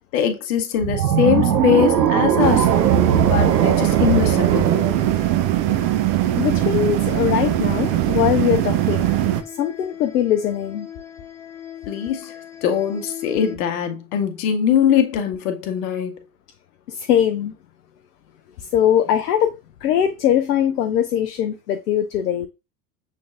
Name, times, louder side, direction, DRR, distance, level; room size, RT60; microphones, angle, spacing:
voice 1, 0.1-2.7 3.3-4.8 11.9-12.3 12.6-16.2, left 8 dB, 60° left, 1.1 m, -21 dB
sound 1, 0.8-6.0, right 8 dB, 85° right, 0.6 m, -20 dB
sound 2, 1.6-13.6, left 9 dB, 5° left, 0.5 m, -39 dB
sound 3, 2.4-9.4, right 13 dB, 45° right, 0.6 m, -20 dB
voice 2, 6.4-9.1 9.6-10.9 16.9-17.5 18.6-22.5, left 10 dB, 75° left, 0.6 m, -21 dB
6.3 x 3.2 x 2.5 m
figure-of-eight pair, 70°, 48 cm